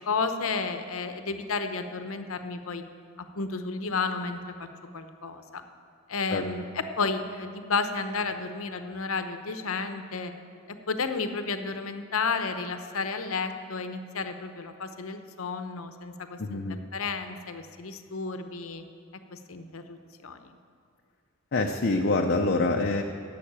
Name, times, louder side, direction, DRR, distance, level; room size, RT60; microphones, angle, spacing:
voice 1, 0.1-2.8 3.2-4.4 4.9-5.6 6.1-10.3 10.9-16.6 16.9-18.8 19.3-20.0 20.2-20.5, left 4 dB, 85° left, 8 dB, 0.8 m, -32 dB
voice 2, 16.4-16.8 21.5-23.0, left 2 dB, 50° left, 2 dB, 0.6 m, -25 dB
11.0 x 7.7 x 8.7 m, 2.3 s
head